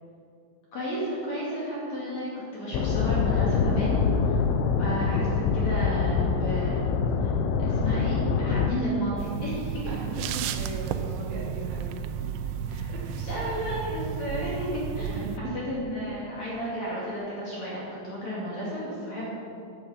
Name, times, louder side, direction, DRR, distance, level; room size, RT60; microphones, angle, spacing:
voice 1, 0.7-4.4 4.8-6.8 7.2-7.3 7.6-9.8 12.7-19.3, equal, 45° left, -7 dB, 2.9 m, -33 dB
sound 1, 2.7-8.7, left 5 dB, 90° left, 3.3 m, -25 dB
sound 2, 9.2-15.4, right 7 dB, 85° right, 2.5 m, -33 dB
voice 2, 9.9-12.0 12.9-13.3 15.1-15.5, right 3 dB, 70° right, -2 dB, 3.7 m, -38 dB
13.5 x 9.9 x 5.0 m, 2.6 s
omnidirectional pair, 5.5 m